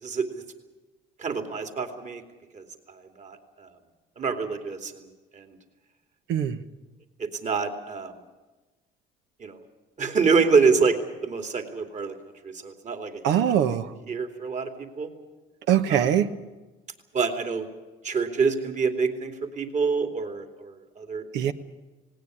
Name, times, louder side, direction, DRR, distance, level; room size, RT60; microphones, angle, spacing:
voice 1, 0.0-0.4 1.2-2.2 2.5-3.7 4.2-5.1 5.3-5.6 7.2-8.2 9.4-9.6 10.0-11.0 11.2-12.1 12.4-13.4 14.1-15.1 15.9-16.1 17.1-17.7 18.0-21.5, right 5 dB, 40° right, 2.8 m, -26 dB
voice 2, 6.3-6.6 13.2-13.9 15.7-16.3 21.3-21.5, right 9 dB, 80° right, 1.2 m, -22 dB
19.0 x 18.0 x 9.8 m
supercardioid pair, 85°, 18 cm